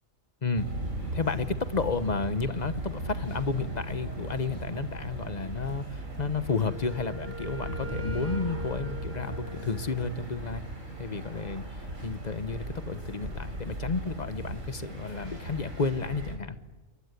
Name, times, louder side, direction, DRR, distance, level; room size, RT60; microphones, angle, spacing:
voice 1, 0.4-0.7 1.1-10.6 11.0-11.6 12.0-16.6, left 4 dB, 35° left, 12 dB, 1.2 m, -32 dB
sound 1, 0.6-16.4, right 1 dB, 75° right, 5.1 m, -37 dB
Wind instrument woodwind instrument, 6.5-10.3, right 1 dB, 10° right, 0.9 m, -43 dB
28.5 x 23.5 x 8.3 m, 1.2 s
omnidirectional pair, 1.4 m